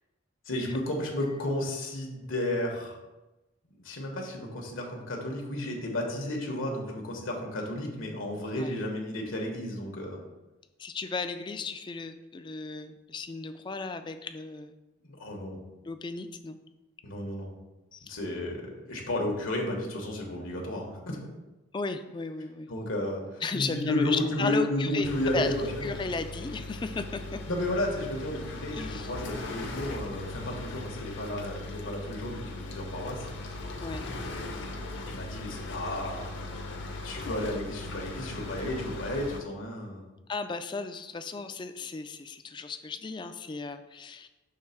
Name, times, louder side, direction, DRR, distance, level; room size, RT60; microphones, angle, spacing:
voice 1, 0.4-3.0 3.7-10.2 15.0-15.6 17.0-17.5 18.1-21.2 22.7-26.0 27.5-33.3 35.0-36.3 37.0-40.1, left 1 dB, 80° left, 0 dB, 1.4 m, -32 dB
voice 2, 10.8-14.7 15.9-16.6 17.9-18.2 21.7-22.7 23.4-25.1 25.3-25.5 25.8-27.4 28.7-29.1 33.8-34.1 40.3-44.3, left 4 dB, 20° left, 9 dB, 0.3 m, -35 dB
sound 1, 25.0-39.4, left 2 dB, 60° left, 0.8 m, -39 dB
6.5 x 3.4 x 5.8 m, 1.1 s
head